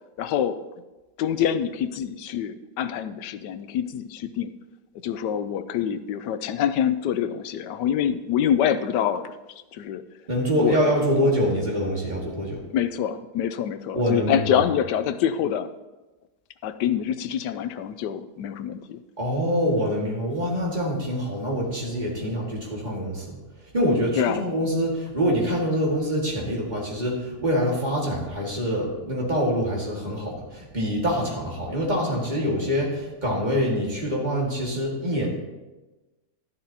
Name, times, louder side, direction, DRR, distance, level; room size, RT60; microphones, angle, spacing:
voice 1, 0.2-0.6 1.2-4.5 5.0-9.3 9.7-10.0 10.6-10.8 12.7-15.7 16.6-19.0 24.2-24.4, left 9 dB, 85° left, 12 dB, 1.2 m, -25 dB
voice 2, 10.3-12.6 13.9-14.6 19.2-23.4 23.7-35.3, equal, 25° right, -3 dB, 2.1 m, -25 dB
12.0 x 10.5 x 2.9 m, 1.1 s
omnidirectional pair, 1.8 m